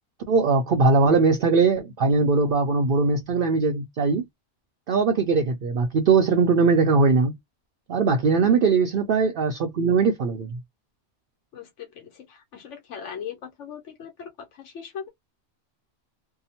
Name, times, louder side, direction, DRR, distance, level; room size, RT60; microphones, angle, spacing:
voice 1, 0.3-4.2 4.9-7.4 7.9-10.6, right 4 dB, 60° right, 0.6 m, -20 dB
voice 2, 11.5-15.1, left 8 dB, 80° left, 1.1 m, -39 dB
2.7 x 2.0 x 2.7 m
omnidirectional pair, 1.2 m